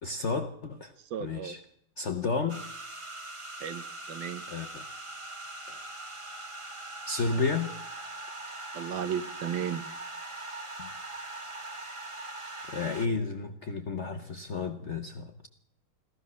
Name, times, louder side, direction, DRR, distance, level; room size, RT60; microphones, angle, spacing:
voice 1, 0.0-0.9 1.2-1.6 2.0-2.6 4.5-4.9 5.7-5.8 7.1-7.7 10.8-10.9 12.7-15.5, left 4 dB, 50° left, 6 dB, 0.8 m, -32 dB
voice 2, 1.1-1.6 3.6-4.4 8.7-9.8, right 8 dB, 70° right, 12 dB, 1.5 m, -34 dB
sound 1, 2.5-13.1, right 2 dB, 20° right, 0.8 m, -41 dB
15.0 x 14.5 x 6.2 m, 0.65 s
omnidirectional pair, 2.3 m